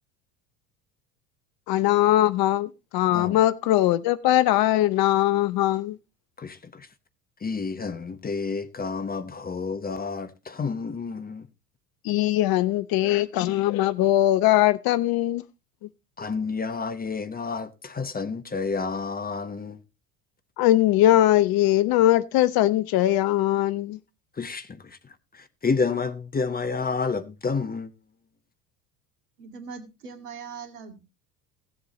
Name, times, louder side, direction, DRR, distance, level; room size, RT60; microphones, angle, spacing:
voice 1, 1.7-6.0 12.0-15.4 20.6-24.0, left 14 dB, 50° left, 0.9 m, -21 dB
voice 2, 6.4-6.9 7.4-11.5 16.2-19.8 24.4-27.9, left 4 dB, 20° left, 1.1 m, -30 dB
voice 3, 29.4-31.0, right 5 dB, 70° right, 2.2 m, -40 dB
17.0 x 7.6 x 2.9 m
hypercardioid pair, 70°, 47 cm